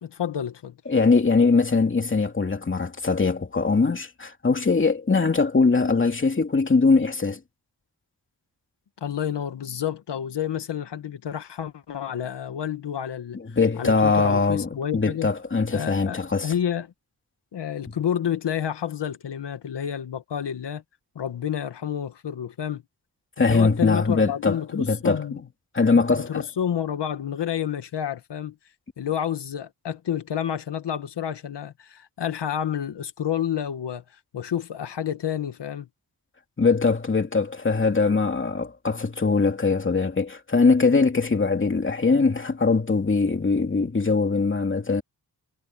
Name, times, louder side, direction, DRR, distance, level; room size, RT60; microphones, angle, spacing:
voice 1, 0.0-0.8 9.0-13.4 13.8-15.3 15.7-16.9 17.5-20.8 21.2-22.8 23.4-25.4 25.9-28.6 29.0-34.0 34.3-35.9, left 9 dB, 85° left, 1.8 m, -29 dB
voice 2, 0.9-7.4 13.3-16.5 23.4-25.2 25.7-26.4 36.6-45.0, left 4 dB, 30° left, 2.8 m, -21 dB
wide cardioid pair, 160°, 41 cm